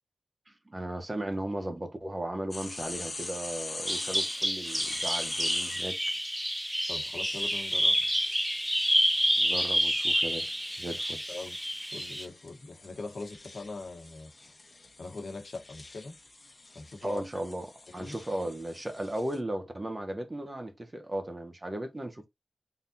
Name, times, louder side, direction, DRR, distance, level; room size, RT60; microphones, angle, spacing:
voice 1, 0.7-6.0 9.4-11.2 17.0-17.7 17.9-22.3, right 1 dB, 25° right, 0.9 m, -36 dB
sound 1, 2.5-5.9 7.2-19.4, left 2 dB, 40° left, 1.1 m, -44 dB
Bird vocalization bird call bird song, 3.9-12.3, equal, 5° right, 0.5 m, -29 dB
voice 2, 6.9-8.0 11.3-11.6 11.9-14.3 15.0-16.2 16.7-17.2 17.9-18.1, left 3 dB, 80° left, 1.1 m, -41 dB
3.8 x 3.6 x 2.7 m
wide cardioid pair, 85°, 0 cm